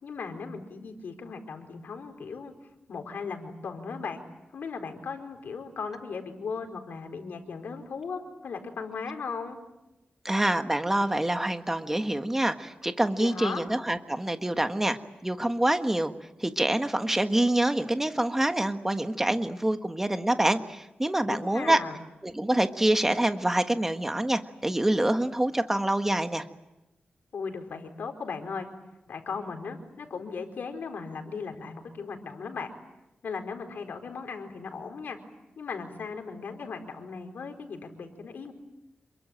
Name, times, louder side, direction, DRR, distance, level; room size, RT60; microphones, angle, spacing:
voice 1, 0.0-2.5 2.9-4.2 4.5-9.6 13.2-13.6 21.2-22.0 27.3-28.7 29.1-32.7 33.2-35.2 35.6-38.5, left 5 dB, 85° left, 5 dB, 4.3 m, -37 dB
voice 2, 10.2-16.1 16.4-21.8 22.2-26.4, right 1 dB, 10° right, 7 dB, 1.4 m, -26 dB
28.0 x 23.0 x 9.1 m, 0.96 s
wide cardioid pair, 140°, 3 cm